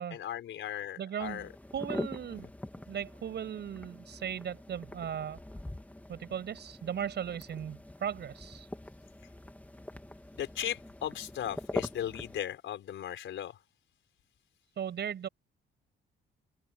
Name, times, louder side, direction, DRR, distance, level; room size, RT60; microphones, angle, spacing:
voice 1, 0.1-1.5 10.3-13.6, left 10 dB, 75° left, 4.7 m, -37 dB
voice 2, 1.0-1.5 1.7-2.5 2.9-5.4 6.1-8.7 14.8-15.3, right 9 dB, 60° right, 6.3 m, -37 dB
sound 1, 1.2-12.4, left 1 dB, 5° left, 2.2 m, -43 dB
open air
cardioid pair, 90°, 20 cm